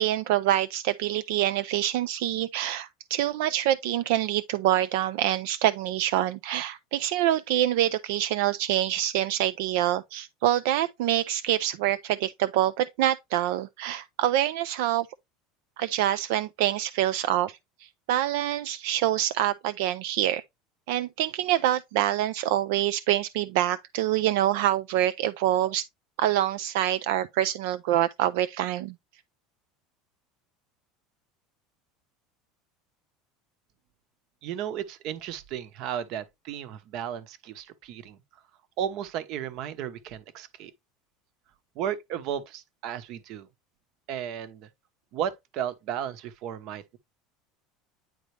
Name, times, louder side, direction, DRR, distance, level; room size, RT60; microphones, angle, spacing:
voice 1, 0.0-15.1 15.8-20.4 20.9-25.8 26.2-28.9, right 13 dB, 75° right, 0.4 m, -26 dB
voice 2, 34.4-38.2 38.8-40.7 41.7-43.5 44.1-44.7 45.1-47.0, right 9 dB, 55° right, 0.9 m, -34 dB
9.3 x 3.7 x 3.2 m
supercardioid pair, 140°, 0 cm